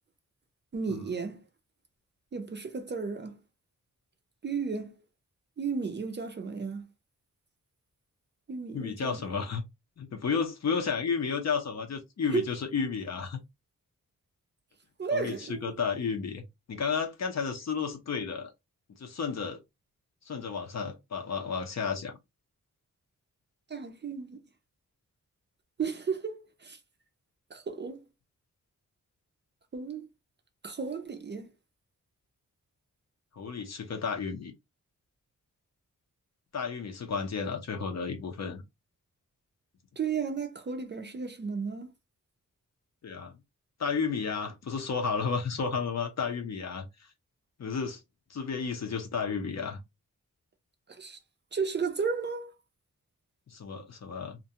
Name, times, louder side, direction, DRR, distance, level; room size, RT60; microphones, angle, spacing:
voice 1, 0.7-1.4 2.3-3.4 4.4-4.9 5.6-6.9 8.5-9.2 12.3-12.4 15.0-15.8 23.7-24.4 25.8-26.8 27.5-28.0 29.7-30.1 30.6-31.5 40.0-41.9 50.9-51.2 51.5-52.5, right 5 dB, 35° right, 0.4 m, -33 dB
voice 2, 8.7-9.6 10.0-13.4 15.1-18.5 19.0-19.6 20.3-22.1 33.3-34.5 36.5-38.6 43.0-43.3 43.8-46.9 47.6-48.0 48.3-49.8 53.5-54.4, left 5 dB, 55° left, 0.6 m, -32 dB
2.5 x 2.2 x 2.7 m
wide cardioid pair, 175°, 33 cm